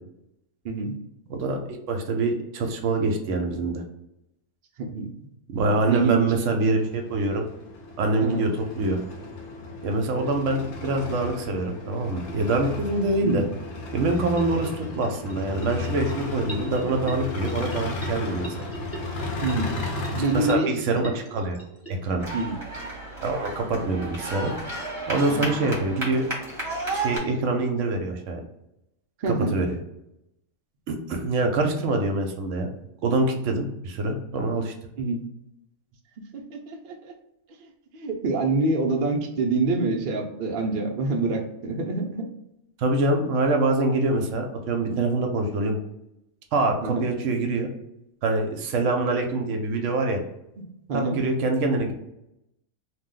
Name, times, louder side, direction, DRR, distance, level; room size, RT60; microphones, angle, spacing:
voice 1, 0.6-1.0 4.8-5.1 5.8-6.3 6.6-6.7 8.2-8.4 13.2-13.5 19.4-19.7 20.1-20.8 22.3-22.6 25.3-25.5 29.2-29.6 35.0-35.3 36.3-37.1 37.9-42.3 44.9-45.2 46.8-47.0 50.6-50.7 50.9-51.2, right 3 dB, 85° right, 2 dB, 0.4 m, -26 dB
voice 2, 1.3-1.6 1.9-3.8 5.5-7.4 8.0-9.0 9.8-13.4 13.9-18.7 20.3-21.6 21.9-22.3 23.2-24.5 25.1-26.3 26.9-28.4 29.5-29.7 30.9-32.7 33.0-34.7 42.8-45.8 46.5-47.7 48.2-50.2 50.9-51.9, right 2 dB, 65° right, 3 dB, 0.8 m, -25 dB
sound 1, 6.1-20.6, left 2 dB, 65° left, 0.8 m, -34 dB
sound 2, 14.1-22.8, right 2 dB, 20° left, 0.4 m, -41 dB
sound 3, 22.2-27.2, right 2 dB, 25° right, 0.9 m, -33 dB
2.7 x 2.0 x 3.6 m, 0.85 s
omnidirectional pair, 1.5 m